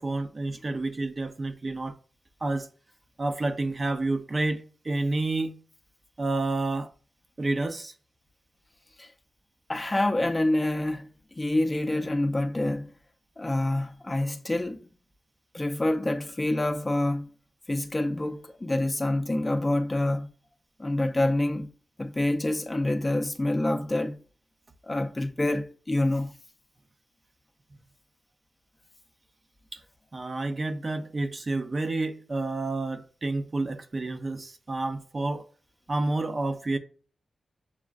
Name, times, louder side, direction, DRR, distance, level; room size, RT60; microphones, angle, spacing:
voice 1, 0.0-2.0 2.4-2.7 3.2-5.5 6.2-6.9 7.4-7.9 30.1-35.5 35.9-36.8, right 2 dB, 35° right, 0.5 m, -29 dB
voice 2, 9.7-11.1 11.4-12.9 13.4-14.9 15.5-17.3 17.7-20.3 20.8-21.7 22.0-24.2 24.8-26.3, left 1 dB, 20° left, 0.5 m, -27 dB
7.1 x 2.4 x 2.4 m
wide cardioid pair, 105°, 0 cm